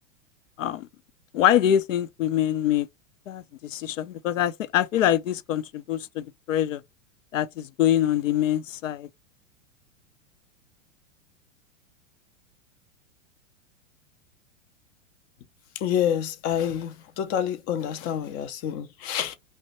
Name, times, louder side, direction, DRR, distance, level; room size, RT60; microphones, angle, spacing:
voice 1, 1.3-2.9 3.3-6.8 7.3-9.1, left 11 dB, 75° left, 0.5 m, -24 dB
voice 2, 15.7-19.3, left 9 dB, 25° left, 0.3 m, -28 dB
2.6 x 2.1 x 4.0 m
hypercardioid pair, 100°, 39 cm